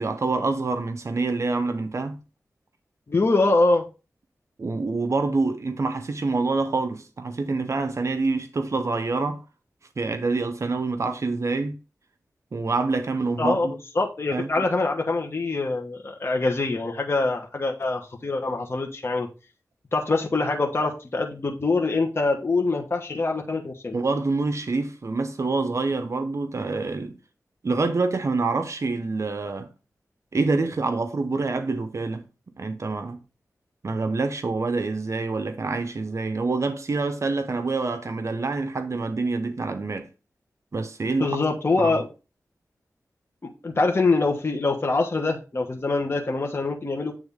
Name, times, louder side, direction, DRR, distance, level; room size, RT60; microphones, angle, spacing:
voice 1, 0.0-2.2 4.6-9.4 10.0-11.8 12.5-13.8 14.3-14.6 23.9-27.2 27.6-29.7 30.3-32.3 32.6-33.2 33.8-40.1 40.7-41.4 41.8-42.0, right 3 dB, 55° right, 0.7 m, -26 dB
voice 2, 3.1-3.8 13.4-13.7 13.9-19.3 19.9-24.0 41.2-42.1 43.6-47.1, left 3 dB, 45° left, 1.1 m, -24 dB
8.4 x 3.5 x 3.5 m
wide cardioid pair, 70°, 6 cm